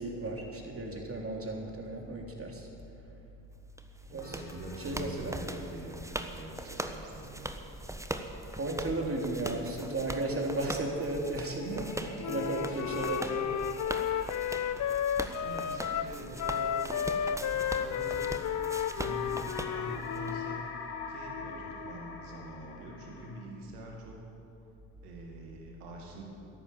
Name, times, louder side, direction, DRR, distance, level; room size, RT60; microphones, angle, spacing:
voice 1, 0.0-2.7 4.1-4.4 4.8-5.4 8.5-11.9 12.3-13.5, right 2 dB, 30° right, 0 dB, 3.6 m, -34 dB
sound 1, 3.8-20.3, right 1 dB, 5° right, 1.2 m, -41 dB
voice 2, 4.1-7.5 11.6-12.2 14.7-18.4 19.0-20.6 21.1-24.2 25.0-26.2, right 2 dB, 85° right, 0 dB, 2.3 m, -44 dB
sound 2, 4.2-5.8 6.1-6.2 10.6-23.5, left 5 dB, 60° left, 2.1 m, -46 dB
Wind instrument woodwind instrument, 12.2-20.6, left 9 dB, 40° left, 0.7 m, -33 dB
13.5 x 11.5 x 8.8 m, 2.8 s
hypercardioid pair, 50°, 44 cm